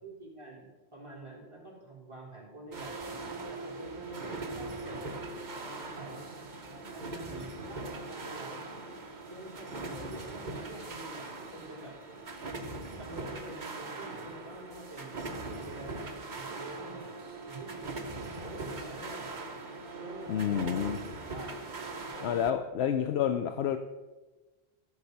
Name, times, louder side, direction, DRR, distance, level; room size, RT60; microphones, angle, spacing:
voice 1, 0.0-0.7 0.9-3.0 3.5-6.6 6.9-8.7 9.3-12.0 12.4-15.2 15.5-16.1 16.3-17.1 17.5-18.1 18.4-19.3 19.9-20.9 21.3-21.6 22.0-22.4 23.0-23.5, right 2 dB, 30° right, -4 dB, 3.6 m, -47 dB
sound 1, 2.7-22.5, right 3 dB, 45° right, 1.2 m, -41 dB
voice 2, 20.3-21.0 22.2-23.8, left 9 dB, 80° left, 8 dB, 0.9 m, -29 dB
14.5 x 6.9 x 5.4 m, 1.2 s
omnidirectional pair, 1.1 m